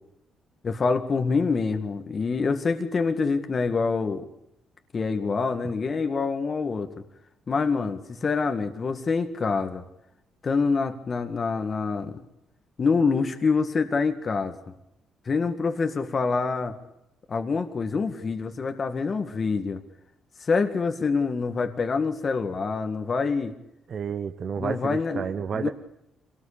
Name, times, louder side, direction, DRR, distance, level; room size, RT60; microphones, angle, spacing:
voice 1, 0.6-4.2 4.9-6.9 7.5-9.8 10.4-12.2 12.8-14.6 15.3-16.7 17.3-19.8 20.4-23.5 24.6-25.3 25.5-25.7, left 4 dB, 40° left, 7 dB, 1.9 m, -26 dB
voice 2, 23.9-25.7, right 7 dB, 55° right, 9 dB, 1.1 m, -30 dB
25.0 x 19.0 x 8.7 m, 0.82 s
cardioid pair, 90°, 0 cm